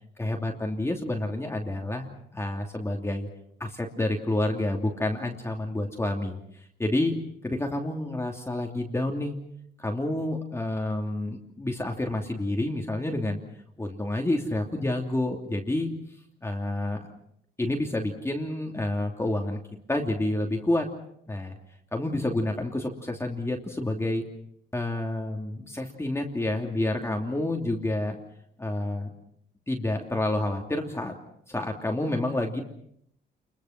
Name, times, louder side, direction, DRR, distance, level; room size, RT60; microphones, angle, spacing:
voice 1, 0.2-3.3 3.6-7.1 7.4-9.3 9.8-13.4 13.8-15.9 16.4-17.0 17.6-19.6 19.9-20.9 21.3-21.5 21.9-24.2 24.7-28.2 28.6-29.1 29.7-31.1 31.5-32.6, left 1 dB, 15° left, 2 dB, 2.9 m, -29 dB
28.5 x 22.5 x 6.0 m, 0.71 s
cardioid pair, 90°, 20 cm